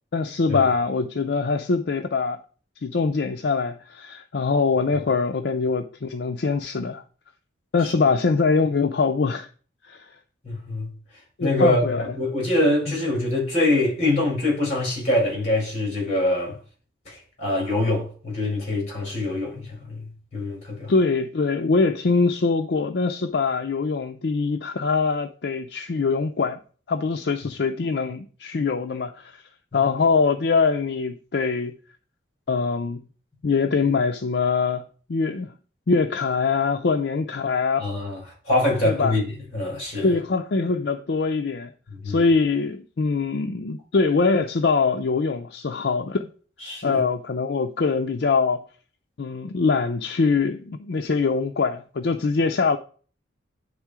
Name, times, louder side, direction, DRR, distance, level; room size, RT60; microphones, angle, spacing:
voice 1, 0.1-2.4 2.8-7.0 7.7-9.5 9.9-10.1 11.4-12.1 12.9-13.0 20.9-26.6 26.9-29.4 29.7-31.7 32.5-33.0 33.4-34.8 35.1-35.5 35.9-37.9 38.8-39.1 40.0-41.7 42.0-46.3 46.8-48.6 49.2-52.8, left 4 dB, 60° left, 0.5 m, -23 dB
voice 2, 10.4-10.9 11.4-16.6 17.0-20.9 29.7-29.8 37.8-40.1 41.9-42.3 46.6-47.0, left 1 dB, 35° left, 4.3 m, -24 dB
10.0 x 3.6 x 4.8 m
head